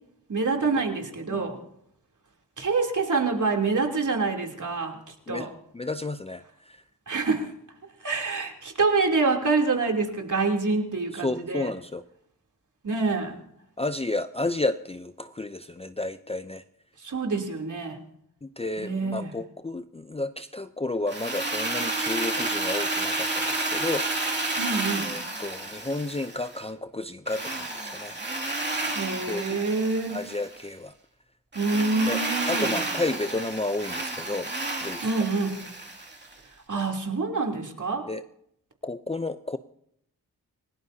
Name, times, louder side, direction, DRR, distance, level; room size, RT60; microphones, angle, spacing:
voice 1, 0.3-1.6 2.6-5.5 7.1-7.5 8.0-11.7 12.8-13.4 17.0-18.0 18.8-19.3 24.6-25.1 28.9-30.2 31.5-32.8 35.0-35.6 36.7-38.0, right 3 dB, 50° right, 1 dB, 3.2 m, -26 dB
voice 2, 5.7-6.8 11.1-12.0 13.8-16.6 18.4-24.1 25.0-28.2 29.3-29.6 30.1-30.9 32.0-32.2 32.5-34.5 34.8-35.3 38.1-38.2 38.8-39.6, left 2 dB, 15° left, 10 dB, 0.5 m, -32 dB
Drill, 21.1-26.6 27.3-30.6 31.5-36.3, right 2 dB, 30° right, 2.5 m, -31 dB
29.0 x 17.5 x 2.8 m, 0.71 s
cardioid pair, 70°, 38 cm